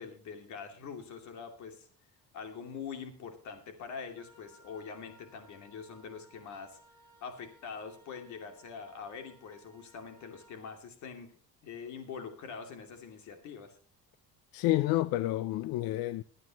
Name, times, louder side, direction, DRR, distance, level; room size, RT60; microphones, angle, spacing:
voice 1, 0.0-1.9 2.3-6.8 7.2-11.3 11.6-13.8, left 6 dB, 55° left, 2.7 m, -44 dB
Wind instrument woodwind instrument, 4.2-10.7, right 1 dB, 15° right, 2.0 m, -61 dB
voice 2, 14.5-16.2, left 16 dB, 80° left, 0.6 m, -29 dB
22.5 x 9.5 x 3.0 m
cardioid pair, 170°, 34 cm